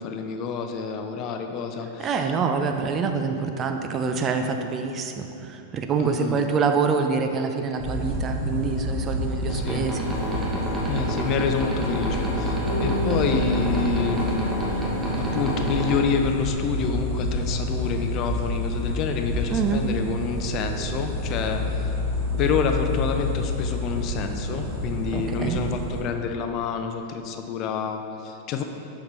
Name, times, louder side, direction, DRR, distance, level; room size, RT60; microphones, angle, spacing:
voice 1, 0.0-2.3 6.0-6.4 9.5-9.9 10.9-14.9 15.2-22.0 22.4-28.6, left 5 dB, 40° left, 5 dB, 0.5 m, -28 dB
voice 2, 2.0-10.0 19.5-19.8 25.1-25.6, right 5 dB, 30° right, 5 dB, 0.4 m, -26 dB
sound 1, 7.8-26.0, left 1 dB, 50° right, 1.4 m, -28 dB
sound 2, 9.5-16.0, right 1 dB, 15° right, 1.2 m, -30 dB
Bass guitar, 12.6-16.8, left 3 dB, 85° left, 0.7 m, -31 dB
7.1 x 4.7 x 3.1 m, 2.8 s
hypercardioid pair, 95°, 0 cm